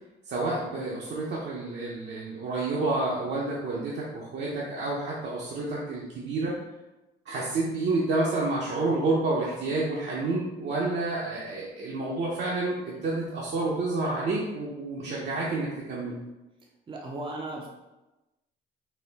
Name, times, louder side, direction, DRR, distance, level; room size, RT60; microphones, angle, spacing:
voice 1, 0.3-6.6 7.3-16.2, right 2 dB, 60° right, -5 dB, 0.8 m, -29 dB
voice 2, 16.9-17.7, right 2 dB, 25° right, -1 dB, 0.6 m, -36 dB
4.1 x 2.1 x 4.0 m, 1.0 s
cardioid pair, 90°, 20 cm